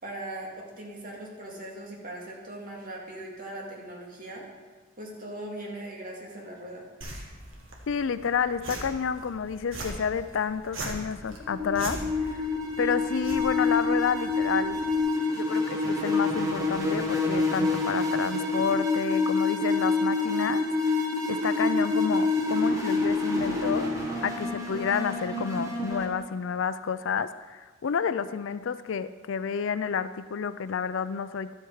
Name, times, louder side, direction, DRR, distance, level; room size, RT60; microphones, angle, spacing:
voice 1, 0.0-4.4 5.0-6.9, right 1 dB, 45° right, -2 dB, 2.2 m, -40 dB
sound 1, 7.0-15.0, right 1 dB, 70° right, 1.7 m, -41 dB
voice 2, 7.9-12.5 12.8-14.8 15.3-23.9 24.2-31.5, left 6 dB, 65° left, 13 dB, 0.4 m, -30 dB
sound 2, 11.3-26.0, left 3 dB, 15° right, 1.6 m, -27 dB
12.0 x 7.9 x 4.8 m, 1.4 s
head